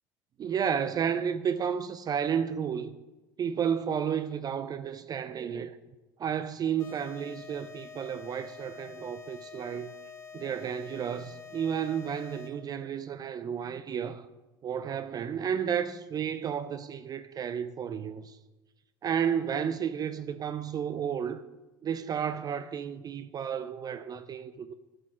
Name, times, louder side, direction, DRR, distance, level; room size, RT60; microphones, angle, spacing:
voice 1, 0.4-3.0 3.4-5.8 6.2-9.9 10.3-14.3 14.6-18.4 19.0-21.4 21.8-24.7, right 8 dB, 35° right, 0.3 m, -32 dB
sound 1, 6.8-12.8, left 6 dB, 25° left, 1.4 m, -47 dB
7.6 x 4.0 x 6.0 m
hypercardioid pair, 75°, 12 cm